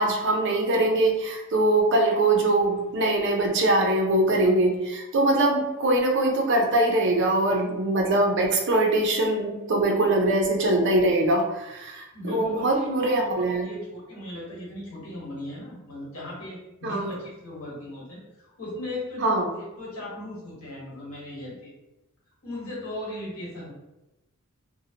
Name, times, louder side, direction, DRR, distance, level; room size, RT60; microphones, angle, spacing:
voice 1, 0.0-13.7 16.8-17.1 19.2-19.5, right 2 dB, 55° right, 1 dB, 0.5 m, -22 dB
voice 2, 12.1-21.7 22.4-23.7, left 1 dB, 90° left, -5 dB, 1.2 m, -37 dB
2.7 x 2.1 x 2.7 m, 0.97 s
head